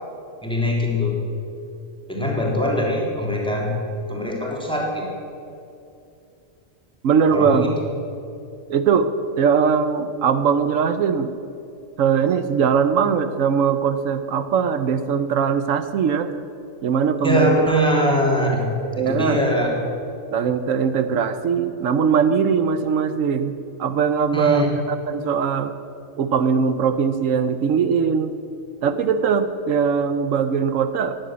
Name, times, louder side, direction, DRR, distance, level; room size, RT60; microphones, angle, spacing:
voice 1, 0.4-1.2 2.1-3.8 4.1-5.1 7.3-7.7 17.2-18.7 19.0-19.7 24.3-24.7, equal, 5° left, -2 dB, 3.1 m, -22 dB
voice 2, 7.0-7.8 8.7-9.1 9.4-11.3 12.0-16.3 16.8-17.6 18.9-19.4 20.3-25.7 26.2-28.3 28.8-31.2, right 6 dB, 80° right, 10 dB, 1.1 m, -20 dB
17.0 x 11.0 x 7.5 m, 2.6 s
omnidirectional pair, 1.3 m